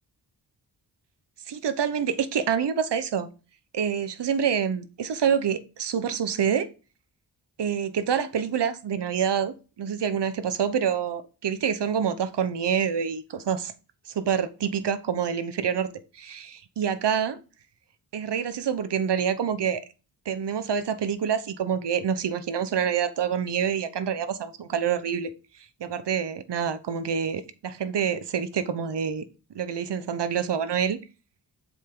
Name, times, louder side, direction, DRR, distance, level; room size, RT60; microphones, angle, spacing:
voice 1, 1.5-3.3 3.7-6.7 7.6-13.7 14.2-15.9 16.1-17.4 18.1-19.8 20.3-25.3 25.8-29.2 29.5-31.0, right 7 dB, 70° right, 1.0 m, -27 dB
7.5 x 5.5 x 3.8 m
wide cardioid pair, 90°, 43 cm